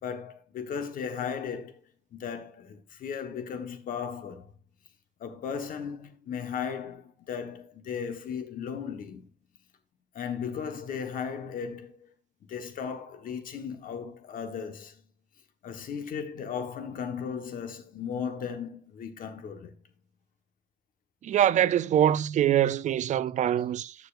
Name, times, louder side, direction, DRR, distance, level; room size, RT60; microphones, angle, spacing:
voice 1, 0.0-1.8 2.1-4.5 5.2-9.3 10.1-12.0 12.4-15.0 15.6-19.7, left 7 dB, 55° left, 1.3 m, -36 dB
voice 2, 21.2-23.9, right 11 dB, 45° right, 0.5 m, -24 dB
9.3 x 6.9 x 2.5 m
cardioid pair, 110°, 17 cm